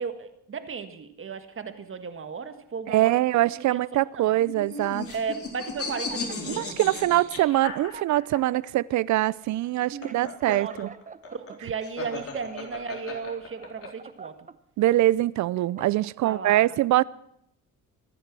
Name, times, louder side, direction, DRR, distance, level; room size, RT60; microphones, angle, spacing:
voice 1, 0.0-3.8 4.1-4.3 5.1-6.7 9.9-10.9 11.3-14.5 16.2-16.7, right 5 dB, 45° right, 1.7 m, -35 dB
voice 2, 2.9-5.1 6.5-10.9 14.8-17.0, right 15 dB, 70° right, 0.6 m, -23 dB
sound 1, 4.4-8.4 9.6-13.9, left 4 dB, 50° left, 4.0 m, -36 dB
sound 2, 5.6-6.8 7.4-7.5 7.8-8.8 9.4-9.6 10.0-11.6 12.1-12.8 13.3-14.6 15.1-16.1, right 4 dB, 25° right, 0.9 m, -45 dB
23.5 x 10.0 x 6.2 m
cardioid pair, 90°, 30 cm